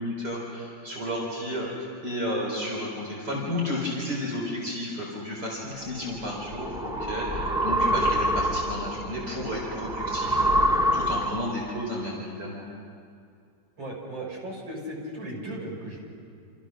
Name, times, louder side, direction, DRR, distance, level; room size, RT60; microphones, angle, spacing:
voice 1, 0.0-1.7 2.0-12.6, left 1 dB, 55° right, -3 dB, 4.7 m, -32 dB
sound 1, 5.9-11.7, equal, ahead, 1.3 m, -26 dB
voice 2, 13.8-16.0, right 1 dB, 80° right, -2 dB, 6.7 m, -36 dB
29.5 x 28.0 x 6.3 m, 2.4 s
omnidirectional pair, 2.1 m